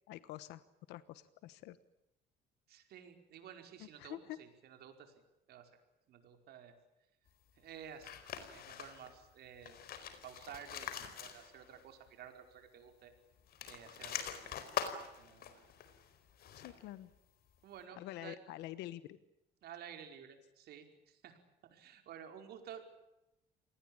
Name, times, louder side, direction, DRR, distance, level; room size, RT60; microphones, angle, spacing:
voice 1, 0.1-0.6 0.9-1.8 3.8-4.4 16.5-17.1 18.0-19.2, left 15 dB, 90° left, 15 dB, 1.2 m, -47 dB
voice 2, 2.7-5.1 5.5-5.7 6.1-6.7 7.6-8.1 8.5-9.8 10.2-13.1 13.7-14.5 15.0-15.6 17.6-18.4 19.6-21.4 21.7-23.0, right 8 dB, 70° right, 6 dB, 5.1 m, -53 dB
sound 1, 8.0-9.2 9.5-11.8 12.1-12.2 13.4-16.9, left 9 dB, 65° left, 4.5 m, -44 dB
27.5 x 19.5 x 8.8 m, 0.90 s
cardioid pair, 110°, 17 cm